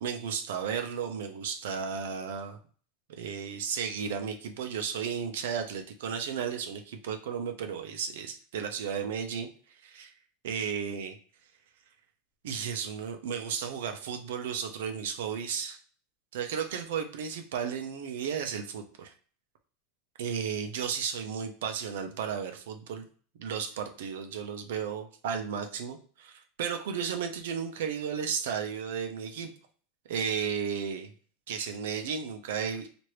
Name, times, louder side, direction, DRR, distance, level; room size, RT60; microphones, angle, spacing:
voice 1, 0.0-2.6 3.2-9.5 9.8-10.1 10.4-11.1 12.4-15.8 16.3-19.1 20.2-23.1 23.4-29.5 30.1-31.1 31.5-32.9, right 7 dB, 75° right, 6 dB, 0.5 m, -34 dB
2.9 x 2.5 x 3.1 m, 0.43 s
supercardioid pair, 165°, 0 cm